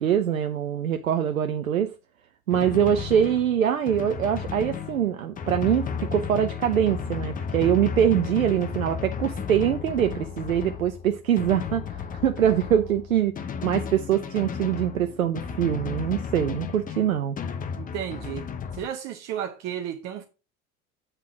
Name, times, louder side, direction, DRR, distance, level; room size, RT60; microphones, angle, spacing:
voice 1, 0.0-1.9 2.5-17.4, right 9 dB, 75° right, 0.7 m, -24 dB
Drum, 2.5-18.9, left 7 dB, 20° left, 0.7 m, -34 dB
voice 2, 17.8-18.5 18.8-20.2, right 10 dB, 40° right, 0.9 m, -33 dB
8.1 x 3.7 x 5.9 m
figure-of-eight pair, 75°, 41 cm